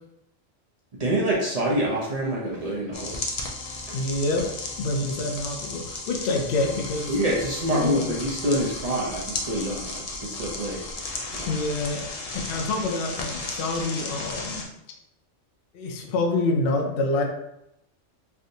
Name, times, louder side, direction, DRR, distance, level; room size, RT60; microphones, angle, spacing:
voice 1, 0.9-3.3 3.9-4.0 7.1-10.8 11.3-11.5, right 1 dB, 45° right, -4 dB, 0.5 m, -26 dB
sound 1, 2.9-14.6, left 3 dB, 75° left, 0.3 m, -35 dB
voice 2, 3.9-4.5 4.8-7.1 7.7-8.0 11.5-12.0 12.5-14.6 15.7-17.2, left 2 dB, 60° left, 1 dB, 0.7 m, -26 dB
3.4 x 2.6 x 2.6 m, 0.83 s
omnidirectional pair, 1.3 m